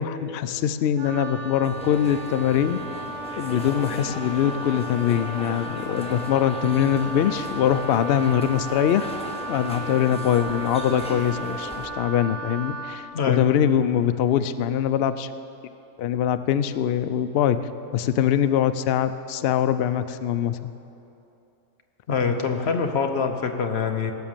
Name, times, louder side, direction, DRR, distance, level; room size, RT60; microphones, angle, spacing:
voice 1, 0.0-2.8 3.4-9.1 9.5-15.3 16.0-17.6 17.9-20.7, left 9 dB, 75° left, 11 dB, 0.5 m, -23 dB
Wind instrument woodwind instrument, 1.0-13.0, right 2 dB, 40° right, 1.6 m, -35 dB
sound 1, 1.6-11.9, left 1 dB, 5° left, 0.8 m, -37 dB
voice 2, 22.1-24.1, left 5 dB, 50° left, 5 dB, 0.9 m, -24 dB
17.5 x 6.3 x 7.3 m, 2.8 s
omnidirectional pair, 1.6 m